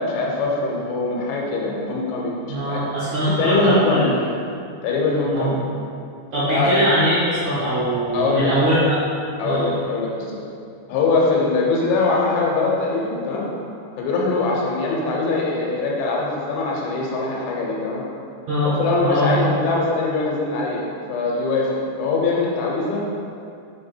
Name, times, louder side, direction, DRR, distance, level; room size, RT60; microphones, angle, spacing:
voice 1, 0.0-2.8 3.3-4.2 4.8-5.6 6.5-6.8 8.1-8.5 9.4-10.4 10.9-13.5 14.0-18.0 18.7-23.0, left 3 dB, 85° left, -3 dB, 3.3 m, -22 dB
voice 2, 2.5-4.0 5.3-5.5 6.3-8.9 9.4-9.7 18.5-19.3, equal, 80° right, -12 dB, 1.6 m, -21 dB
7.1 x 3.6 x 4.4 m, 2.4 s
omnidirectional pair, 5.1 m